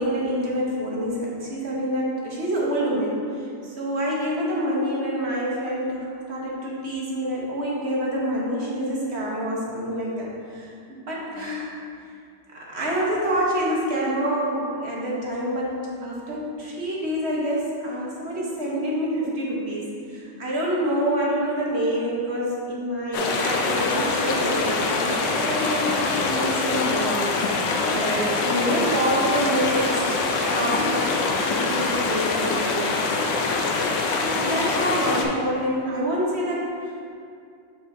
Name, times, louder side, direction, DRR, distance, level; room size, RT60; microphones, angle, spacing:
voice 1, 0.0-11.7 12.5-30.3 30.5-31.1 31.4-33.2 34.2-37.1, equal, 40° right, -5 dB, 1.2 m, -27 dB
sound 1, 23.1-35.3, left 3 dB, 85° left, 1.3 m, -24 dB
7.0 x 6.0 x 2.7 m, 2.4 s
omnidirectional pair, 1.9 m